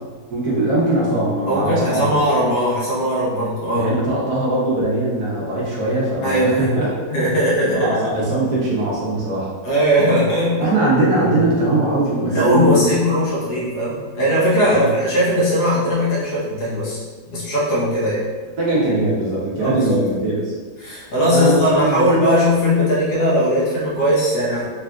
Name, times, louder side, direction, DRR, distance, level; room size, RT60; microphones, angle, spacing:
voice 1, 0.3-2.2 3.8-6.9 7.6-9.5 10.6-12.9 14.7-14.9 18.6-20.5 21.3-22.1, right 2 dB, 60° right, -6 dB, 1.1 m, -20 dB
voice 2, 1.5-3.9 6.2-6.7 7.1-8.0 9.6-10.6 12.3-17.0 17.3-18.2 19.6-20.2 20.8-24.6, equal, 60° left, -7 dB, 1.4 m, -19 dB
4.1 x 2.4 x 2.2 m, 1.4 s
omnidirectional pair, 2.1 m